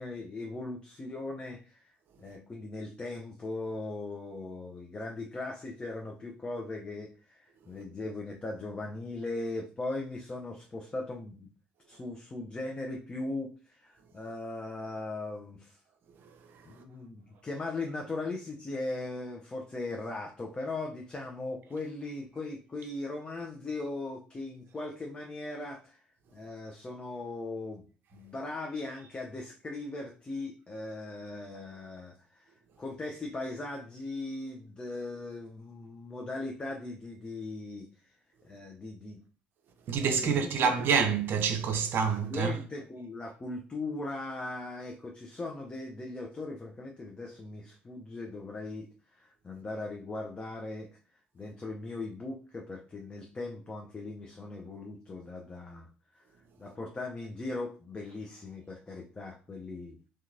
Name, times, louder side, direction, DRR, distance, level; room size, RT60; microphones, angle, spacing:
voice 1, 0.0-11.5 11.9-15.8 16.6-27.8 28.1-32.5 32.8-37.9 38.4-39.2 40.2-40.8 42.1-48.9 49.1-50.9 51.3-55.9 56.1-56.2 56.6-60.0, left 2 dB, 20° left, 0.4 m, -39 dB
voice 2, 39.9-42.5, right 6 dB, 45° right, 0.5 m, -27 dB
2.7 x 2.2 x 2.5 m
figure-of-eight pair, 55°, 5 cm